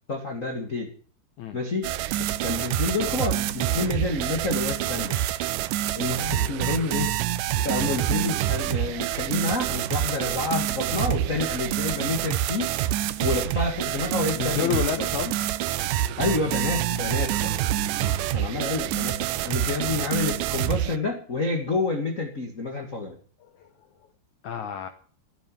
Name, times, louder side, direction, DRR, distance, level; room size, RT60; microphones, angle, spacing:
voice 1, 0.1-0.9 1.5-5.2 5.9-12.7 13.2-15.3 16.2-17.5 18.3-23.2, left 3 dB, 40° left, 2 dB, 1.1 m, -29 dB
sound 1, 1.8-21.0, right 13 dB, 90° right, 1.8 m, -27 dB
voice 2, 14.4-15.3 18.0-18.2 23.4-23.9 24.4-24.9, left 10 dB, 80° left, 8 dB, 1.7 m, -30 dB
15.0 x 9.4 x 7.3 m, 0.43 s
omnidirectional pair, 4.8 m